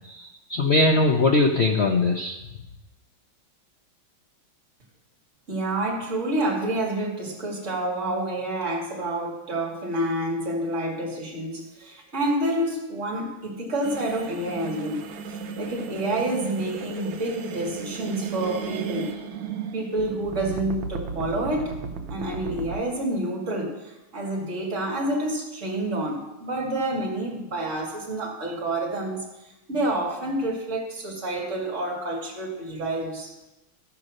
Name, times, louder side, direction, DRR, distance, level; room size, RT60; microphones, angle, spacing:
voice 1, 0.0-2.3, left 2 dB, 75° left, 1 dB, 0.5 m, -21 dB
voice 2, 5.5-19.1 19.7-21.8 22.1-29.2 29.7-33.3, right 1 dB, 35° right, -1 dB, 2.5 m, -28 dB
sound 1, 13.8-22.8, right 6 dB, 75° right, 1.5 m, -35 dB
14.0 x 5.4 x 6.3 m, 1.0 s
omnidirectional pair, 2.2 m